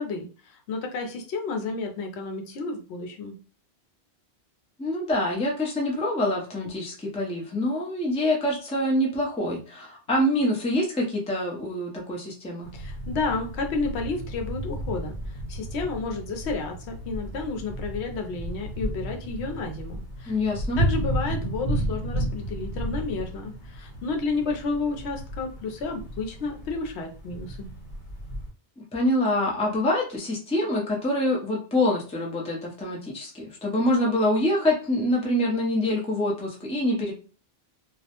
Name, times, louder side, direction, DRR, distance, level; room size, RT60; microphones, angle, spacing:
voice 1, 0.0-3.4 12.7-20.3 20.8-27.7, left 3 dB, 80° left, 3 dB, 0.9 m, -31 dB
voice 2, 4.8-12.7 20.3-20.8 28.9-37.1, left 1 dB, 10° left, -2 dB, 0.3 m, -25 dB
sound 1, 12.6-28.5, right 1 dB, 60° left, 1.1 m, -33 dB
2.3 x 2.0 x 2.8 m, 0.36 s
omnidirectional pair, 1.1 m